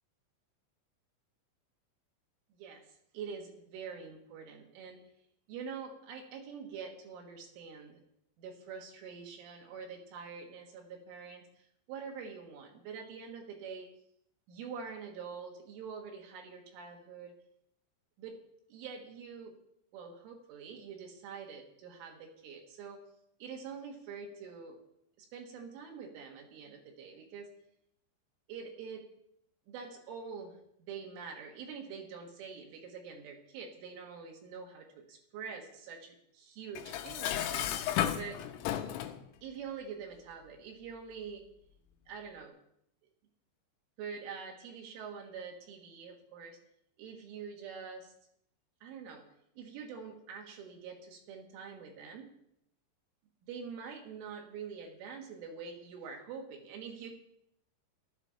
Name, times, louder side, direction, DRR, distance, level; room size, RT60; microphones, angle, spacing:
voice 1, 3.1-5.0 5.5-8.0 8.4-11.5 11.9-13.9 14.5-17.3 18.2-18.4 18.7-19.5 19.9-23.0 23.4-24.8 25.2-27.5 28.5-29.1 29.7-37.7 38.1-38.4 39.4-41.4 42.1-42.5 44.0-46.6 47.0-48.1 48.8-49.3 49.6-52.3 53.4-57.1, right 6 dB, 75° right, 1 dB, 4.1 m, -45 dB
Dishes pots and pans, 36.8-39.2, left 11 dB, 90° left, 3.6 m, -33 dB
15.0 x 12.0 x 4.3 m, 0.76 s
omnidirectional pair, 5.9 m